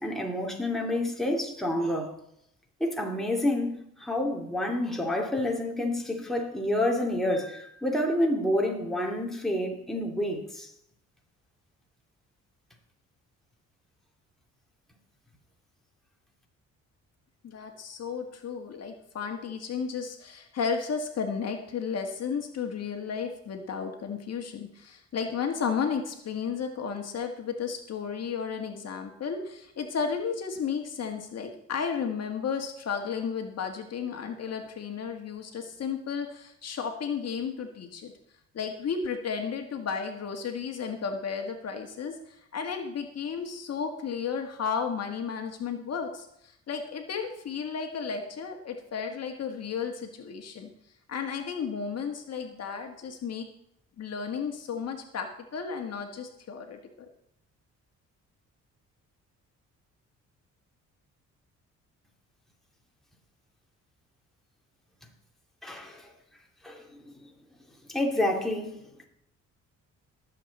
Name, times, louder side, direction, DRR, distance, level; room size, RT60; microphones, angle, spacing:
voice 1, 0.0-2.2 2.8-10.7 65.6-66.1 66.6-67.1 67.9-68.8, left 1 dB, ahead, 2.8 m, -29 dB
voice 2, 17.4-38.1 38.5-50.7 51.1-53.5 54.0-56.8, left 6 dB, 55° left, 1.7 m, -33 dB
19.0 x 7.6 x 4.2 m
cardioid pair, 90°, 30 cm